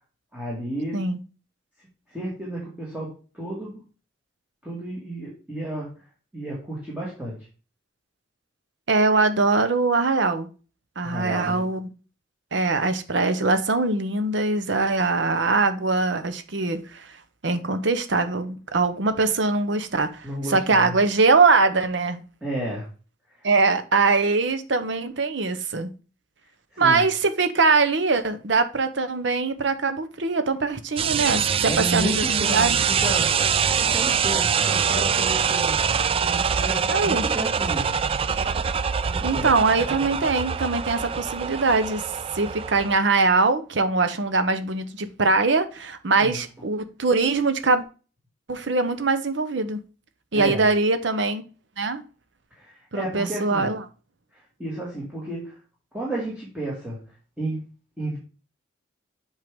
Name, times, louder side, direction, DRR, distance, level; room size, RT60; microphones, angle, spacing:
voice 1, 0.3-1.0 2.1-3.8 4.6-5.9 6.3-7.5 11.0-11.6 20.2-21.0 22.4-22.9 23.3-23.5 26.7-27.1 31.7-33.4 33.8-38.0 39.0-39.5 46.2-46.4 50.3-50.6 52.6-53.7 54.3-55.6 55.9-57.0 57.4-57.6 58.0-58.2, right 1 dB, 5° right, 2.1 m, -32 dB
voice 2, 8.9-10.5 11.0-11.9 12.5-17.2 17.4-22.2 23.4-25.9 26.8-32.8 36.9-37.3 39.2-42.0 42.3-47.8 48.5-49.8 50.3-51.5 51.8-52.0 52.9-53.8, right 3 dB, 65° right, 0.9 m, -22 dB
sound 1, 31.0-43.0, right 7 dB, 30° right, 0.3 m, -24 dB
7.7 x 4.6 x 3.6 m
head